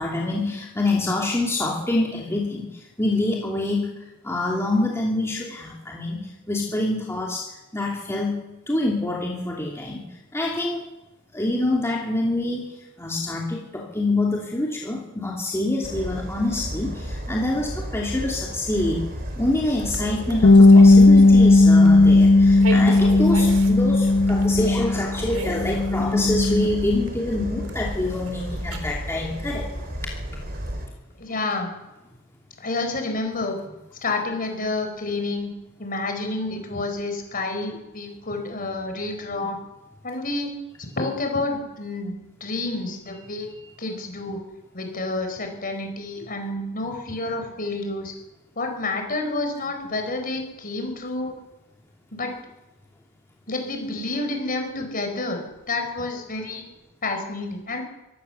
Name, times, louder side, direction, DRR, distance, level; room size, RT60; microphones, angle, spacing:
voice 1, 0.0-3.9 4.2-8.4 8.7-10.8 11.3-19.1 19.4-29.7, left 2 dB, 15° left, -2 dB, 2.8 m, -26 dB
sound 1, 15.8-30.9, equal, 45° right, 4.2 m, -33 dB
sound 2, 18.7-21.6 21.8-22.1 22.5-28.8, right 2 dB, 90° right, 3.7 m, -37 dB
Bass guitar, 20.4-25.1 25.5-26.7, left 2 dB, 55° left, 1.0 m, -15 dB
voice 2, 31.2-31.7 32.6-33.6 34.0-35.5 35.8-39.6 40.0-40.5 40.8-42.1 42.4-44.4 44.7-48.1 48.6-51.4 52.1-52.4 53.5-56.6 57.0-57.8, left 2 dB, 40° left, 5 dB, 5.1 m, -29 dB
24.5 x 15.5 x 7.0 m, 0.99 s
head